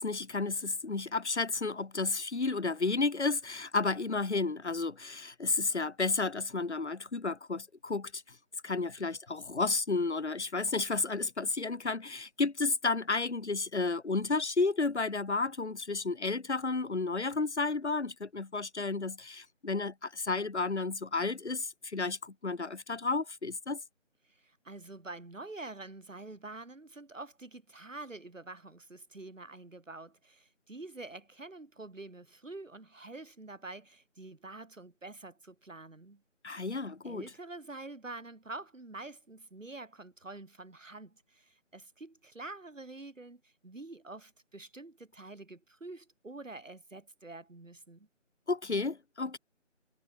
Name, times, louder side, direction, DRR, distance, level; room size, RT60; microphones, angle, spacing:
voice 1, 0.0-8.4 8.6-23.8 36.4-37.2 48.5-49.4, left 3 dB, 60° left, 2.1 m, -32 dB
voice 2, 24.2-36.2 37.0-48.1, right 2 dB, 80° right, 3.3 m, -47 dB
figure-of-eight pair, 170°, 38 cm